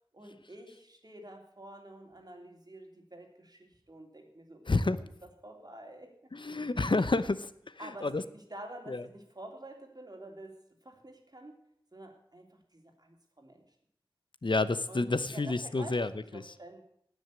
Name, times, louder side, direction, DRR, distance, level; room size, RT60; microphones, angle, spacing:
voice 1, 0.1-6.1 7.8-11.6 11.9-13.7 14.9-16.8, right 1 dB, 45° right, 2 dB, 3.1 m, -49 dB
voice 2, 4.7-5.0 6.3-8.2 8.9-9.0 14.4-16.4, left 3 dB, 60° left, 14 dB, 0.8 m, -30 dB
18.0 x 6.4 x 8.4 m, 0.70 s
wide cardioid pair, 45°, 9 cm